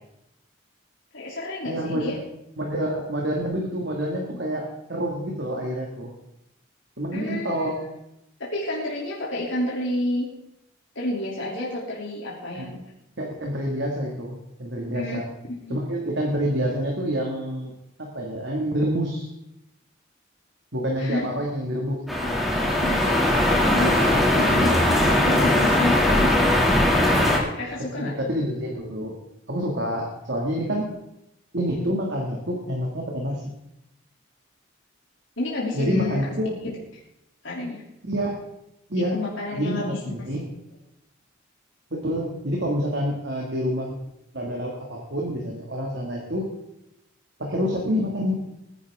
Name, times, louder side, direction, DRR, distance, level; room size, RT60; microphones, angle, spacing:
voice 1, 1.1-2.2 7.1-7.7 8.4-10.3 10.9-12.8 14.9-15.2 15.6-15.8 21.0-21.2 22.8-23.2 23.7-26.3 27.1-27.2 27.5-28.1 35.4-36.2 37.4-37.8 39.1-40.0, left 1 dB, 70° left, -5 dB, 3.0 m, -29 dB
voice 2, 1.6-2.2 2.6-6.1 7.0-7.8 12.5-12.8 13.2-15.3 15.7-17.7 18.0-19.3 20.7-22.4 24.5-24.8 27.9-29.1 29.5-30.9 31.5-33.5 35.7-36.6 38.0-38.5 38.9-39.2 39.5-40.4 41.9-44.0 44.3-46.5 47.4-48.4, equal, 55° right, -1 dB, 2.2 m, -27 dB
sound 1, 22.1-27.4, left 1 dB, ahead, 2.5 m, -20 dB
20.5 x 10.5 x 3.7 m, 0.85 s
head